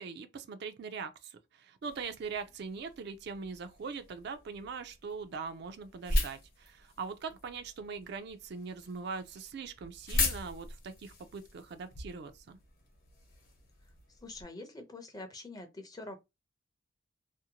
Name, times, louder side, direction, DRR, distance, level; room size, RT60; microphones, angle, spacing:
voice 1, 0.0-12.6, right 5 dB, 55° right, 0.3 m, -41 dB
sound 1, 1.8-14.4, left 2 dB, 50° left, 0.9 m, -39 dB
voice 2, 14.2-16.2, left 2 dB, 20° left, 0.5 m, -45 dB
2.6 x 2.1 x 2.8 m
head